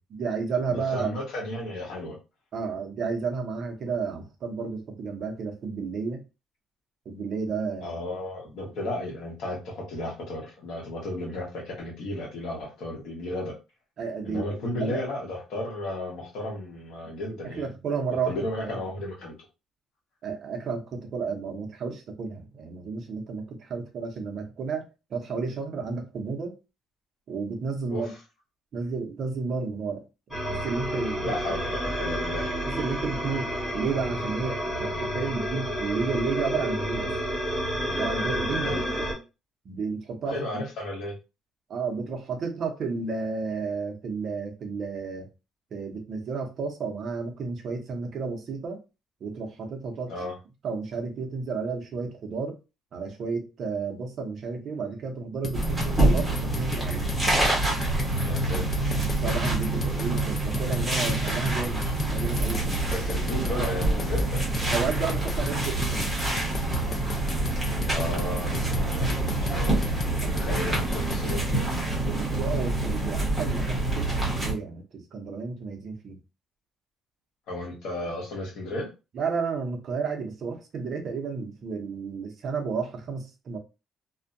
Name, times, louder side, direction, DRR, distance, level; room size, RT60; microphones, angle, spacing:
voice 1, 0.1-1.2 2.5-6.2 7.1-8.0 8.6-8.7 14.0-15.0 17.4-18.3 18.7-18.8 20.2-24.8 25.1-26.6 27.3-28.1 28.7-30.0 30.3-31.4 32.8-37.2 37.8-38.8 39.6-40.6 41.7-45.3 45.7-48.8 49.2-50.1 50.6-52.6 52.9-57.1 59.2-62.9 63.4-63.7 64.7-66.1 70.2-70.5 72.1-76.2 79.1-83.6, right 5 dB, 40° right, 0.5 m, -32 dB
voice 2, 0.7-2.2 7.8-13.5 14.2-17.7 18.3-19.3 27.9-28.1 31.2-32.5 38.6-38.8 40.3-41.1 50.1-50.3 58.2-58.9 62.9-64.4 67.9-71.7 77.5-78.9, left 1 dB, 60° left, 1.0 m, -34 dB
sound 1, 30.3-39.1, equal, 10° left, 1.2 m, -30 dB
sound 2, 55.4-71.4, left 3 dB, 25° left, 0.3 m, -36 dB
sound 3, 55.5-74.5, right 2 dB, 5° right, 0.8 m, -26 dB
2.5 x 2.1 x 2.5 m
cardioid pair, 180°, 0 cm